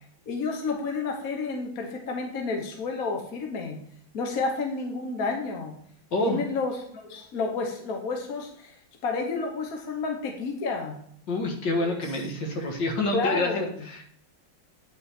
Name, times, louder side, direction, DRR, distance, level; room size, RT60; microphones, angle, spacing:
voice 1, 0.3-3.8 4.1-5.8 6.2-8.7 9.0-11.0 11.8-12.0 13.1-13.7, left 4 dB, 50° left, 2 dB, 1.5 m, -30 dB
voice 2, 6.1-6.4 11.3-14.0, left 2 dB, 65° left, 2 dB, 2.1 m, -27 dB
9.1 x 5.6 x 4.2 m, 0.63 s
omnidirectional pair, 2.1 m